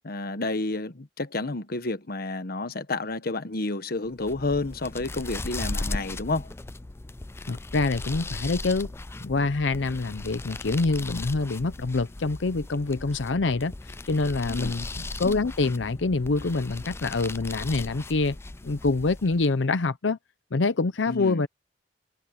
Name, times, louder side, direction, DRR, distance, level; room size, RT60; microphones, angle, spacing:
voice 1, 0.0-6.5 14.5-14.7 21.1-21.4, left 2 dB, 55° left, 1.3 m, -30 dB
sound 1, 4.1-19.6, left 2 dB, 15° left, 0.4 m, -37 dB
voice 2, 7.5-8.9 9.2-13.7 14.1-18.4 18.6-20.2 20.5-21.5, left 3 dB, 90° left, 0.7 m, -26 dB
head